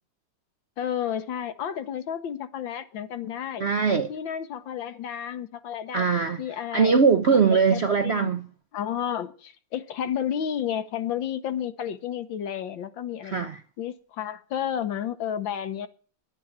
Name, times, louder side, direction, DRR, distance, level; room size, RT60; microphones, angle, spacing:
voice 1, 0.8-3.6 4.1-6.1 6.4-7.0 7.5-8.3 8.7-13.5 13.8-15.9, left 9 dB, 80° left, 1.8 m, -31 dB
voice 2, 3.6-4.1 5.9-6.4 6.7-8.5 13.2-13.6, right 5 dB, 60° right, 0.7 m, -21 dB
11.0 x 8.8 x 8.7 m
omnidirectional pair, 2.0 m